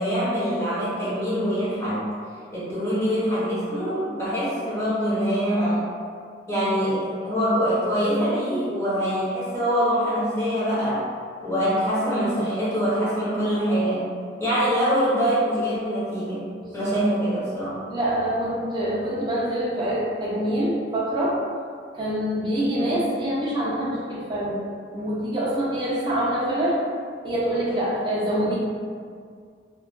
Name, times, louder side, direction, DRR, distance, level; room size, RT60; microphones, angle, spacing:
voice 1, 0.0-2.0 2.5-5.9 6.5-11.0 11.4-14.1 14.4-16.4 16.7-17.7 22.8-22.9, equal, 15° left, -10 dB, 0.8 m, -24 dB
voice 2, 16.6-16.9 17.9-21.4 21.9-24.7 24.9-26.8 27.2-28.5, right 1 dB, 25° right, -8 dB, 0.6 m, -25 dB
2.3 x 2.2 x 2.5 m, 2.1 s
head